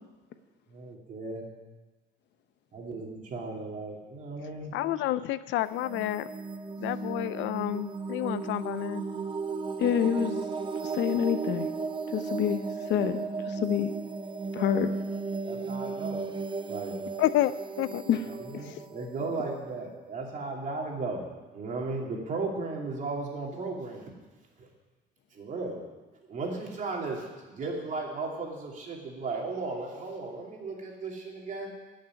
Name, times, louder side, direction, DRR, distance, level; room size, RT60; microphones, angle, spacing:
voice 1, 0.7-1.5 2.7-4.7 15.4-16.3 16.7-17.0 18.4-24.1 24.6-24.7 25.3-25.9 26.3-31.7, right 3 dB, 40° right, -1 dB, 2.9 m, -35 dB
voice 2, 4.7-6.3 6.8-9.0 17.2-17.5 17.8-18.0, left 14 dB, 85° left, 15 dB, 0.6 m, -29 dB
sound 1, 5.6-20.3, right 4 dB, 25° right, 0.6 m, -35 dB
voice 3, 9.8-10.5 10.8-11.7 12.1-13.2 13.5-13.9 14.5-14.9 18.1-18.2 18.5-18.6, left 9 dB, 65° left, 8 dB, 1.0 m, -27 dB
14.0 x 6.6 x 9.7 m, 1.2 s
cardioid pair, 155°, 19 cm